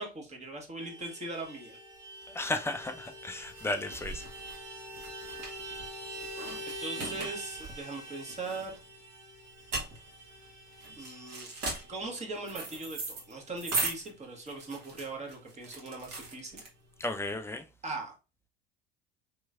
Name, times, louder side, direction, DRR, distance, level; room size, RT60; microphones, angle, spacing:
voice 1, 0.0-1.8 6.7-8.8 11.0-11.5 11.9-16.6 17.8-18.1, right 2 dB, 20° right, 1.3 m, -40 dB
Vehicle horn car horn honking, 0.8-14.7 15.0-15.1 15.4-15.6 15.8-16.5, right 1 dB, 85° right, 1.3 m, -45 dB
voice 2, 2.3-4.2 17.0-17.7, left 2 dB, 10° left, 0.5 m, -34 dB
sound 1, 2.7-17.1, right 3 dB, 50° right, 1.4 m, -39 dB
3.3 x 3.0 x 2.4 m
hypercardioid pair, 70°, 31 cm